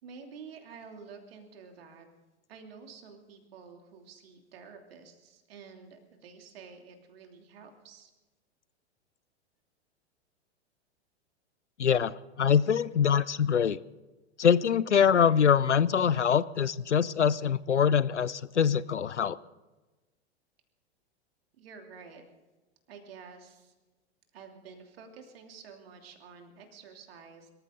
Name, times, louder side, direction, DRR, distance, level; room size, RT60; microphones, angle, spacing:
voice 1, 0.0-2.1 2.5-8.1 21.6-22.2 22.9-23.7 24.3-27.5, right 5 dB, 60° right, 4 dB, 3.0 m, -50 dB
voice 2, 11.8-13.8 14.4-19.4, left 7 dB, 85° left, 19 dB, 0.6 m, -24 dB
24.5 x 14.0 x 3.8 m, 1.1 s
figure-of-eight pair, 100°, 34 cm